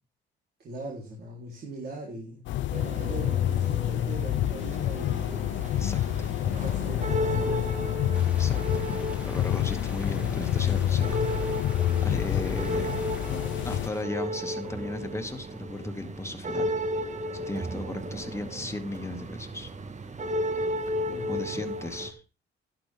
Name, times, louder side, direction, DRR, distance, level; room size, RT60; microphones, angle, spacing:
voice 1, 0.6-2.4 2.8-5.9 6.4-8.1 21.1-21.6, right 2 dB, 55° right, -3 dB, 3.7 m, -41 dB
sound 1, 2.5-13.9, left 12 dB, 70° left, 0.4 m, -28 dB
sound 2, 2.7-22.1, equal, 35° right, 1.7 m, -34 dB
sound 3, 8.1-14.0, equal, 5° right, 2.4 m, -48 dB
voice 2, 8.3-8.9 9.2-11.6 12.0-13.1 13.6-16.7 17.3-19.7 21.3-22.2, left 1 dB, 15° left, 7 dB, 2.1 m, -36 dB
11.5 x 11.0 x 3.6 m, 0.31 s
cardioid pair, 90°, 20 cm